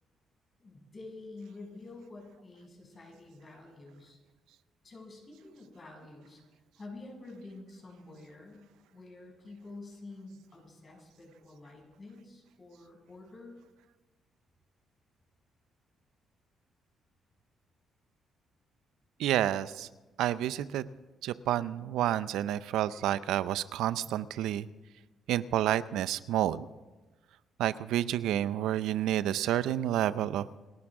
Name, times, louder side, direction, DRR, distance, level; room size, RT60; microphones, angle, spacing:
voice 1, 0.6-4.2 4.8-6.4 6.7-8.7 8.9-13.5, left 2 dB, 35° left, -1 dB, 6.5 m, -48 dB
voice 2, 19.2-19.9 20.2-20.9 21.2-24.7 25.3-26.7 27.6-30.5, right 12 dB, 85° right, 16 dB, 0.5 m, -29 dB
28.0 x 12.0 x 3.7 m, 1.2 s
cardioid pair, 90°, 0 cm